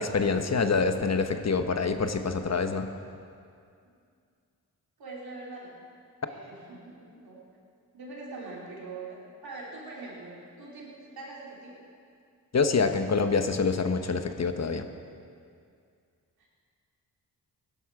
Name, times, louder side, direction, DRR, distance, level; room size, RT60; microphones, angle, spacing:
voice 1, 0.0-2.9 12.5-14.9, left 4 dB, 45° left, 8 dB, 1.0 m, -26 dB
voice 2, 5.0-5.8 6.2-7.4 7.9-11.8 16.4-16.5, right 3 dB, 85° right, -4 dB, 3.3 m, -43 dB
16.5 x 11.0 x 4.8 m, 2.3 s
cardioid pair, 65°, 36 cm